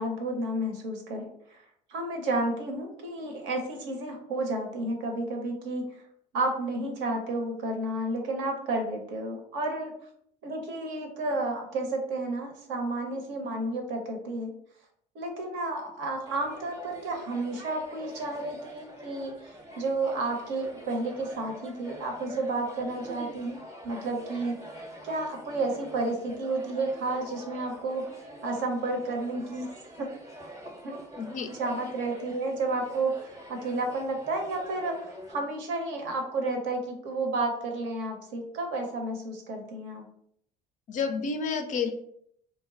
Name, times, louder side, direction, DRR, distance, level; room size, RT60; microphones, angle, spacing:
voice 1, 0.0-1.6 1.9-5.8 6.3-9.9 10.4-14.6 15.1-23.6 23.8-24.6 25.0-29.7 30.0-30.1 30.8-30.9 31.4-40.0, right 2 dB, 60° right, 3 dB, 0.7 m, -31 dB
sound 1, 16.3-35.3, equal, 15° right, 0.7 m, -45 dB
voice 2, 31.2-31.5 40.9-41.9, left 5 dB, 40° left, 7 dB, 0.4 m, -30 dB
2.0 x 2.0 x 3.7 m, 0.69 s
hypercardioid pair, 55°, 20 cm